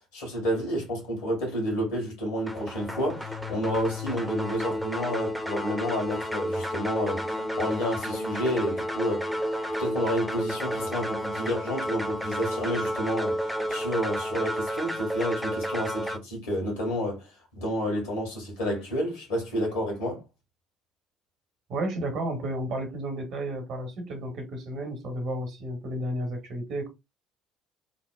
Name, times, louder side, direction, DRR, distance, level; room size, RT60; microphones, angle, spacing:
voice 1, 0.1-9.3 9.8-20.2, equal, 70° left, 1.2 m, -30 dB
sound 1, 2.5-16.2, equal, 5° left, 0.5 m, -31 dB
voice 2, 21.7-26.9, right 1 dB, 55° right, 0.8 m, -32 dB
2.7 x 2.0 x 2.2 m
figure-of-eight pair, 55°, 0 cm